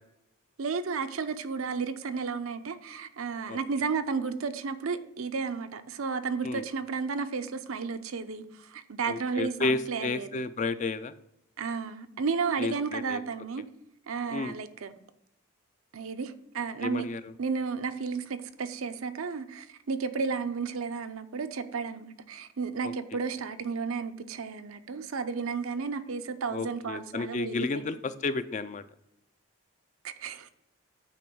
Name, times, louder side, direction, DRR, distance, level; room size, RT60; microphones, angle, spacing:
voice 1, 0.6-10.4 11.6-13.6 14.1-14.9 15.9-17.1 17.4-28.0 30.0-30.5, right 5 dB, 80° right, 0.6 m, -33 dB
voice 2, 9.1-11.1 12.6-13.2 14.3-14.5 16.8-17.3 22.8-22.9 26.5-28.8, left 3 dB, 35° left, 0.3 m, -32 dB
8.7 x 3.1 x 6.1 m
head